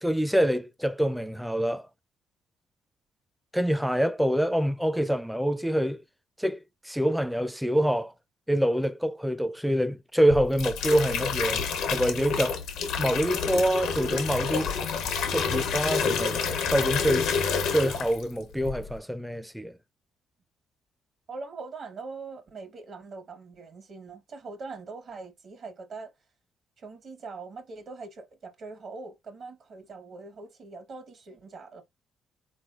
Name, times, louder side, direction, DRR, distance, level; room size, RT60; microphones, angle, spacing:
voice 1, 0.0-1.9 3.5-6.0 6.4-6.6 6.8-8.1 8.5-12.6 13.0-14.7 15.3-17.4 17.7-19.7, equal, ahead, 0.4 m, -26 dB
sound 1, 10.3-18.3 18.6-19.0, left 6 dB, 80° left, 0.8 m, -29 dB
voice 2, 21.3-26.1 26.8-31.8, right 4 dB, 60° right, 1.2 m, -42 dB
3.9 x 3.2 x 2.4 m
supercardioid pair, 55°, 0 cm